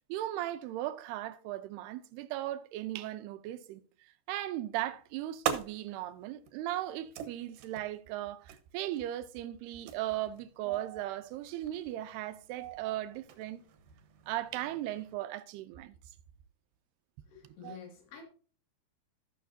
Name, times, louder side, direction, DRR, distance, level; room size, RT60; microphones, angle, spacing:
voice 1, 0.1-13.6 14.3-15.9 17.4-17.8, right 14 dB, 90° right, 2.7 m, -37 dB
sound 1, 4.7-15.1, right 9 dB, 65° right, 2.2 m, -44 dB
voice 2, 17.3-18.2, left 7 dB, 90° left, 4.2 m, -49 dB
15.5 x 6.7 x 2.6 m
omnidirectional pair, 4.6 m